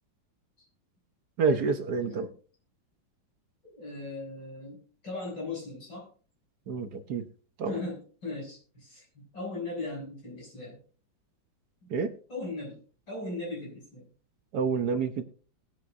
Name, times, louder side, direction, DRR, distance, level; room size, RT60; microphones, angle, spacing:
voice 1, 1.4-2.3 6.7-7.2 7.6-7.8 11.9-12.1 14.5-15.2, right 4 dB, 60° right, 9 dB, 1.5 m, -28 dB
voice 2, 2.0-2.3 3.6-4.8 5.0-6.1 7.7-9.0 9.3-10.8 12.3-12.8 13.1-14.1, left 2 dB, 65° left, -3 dB, 8.2 m, -38 dB
20.5 x 9.0 x 2.7 m, 0.40 s
omnidirectional pair, 2.1 m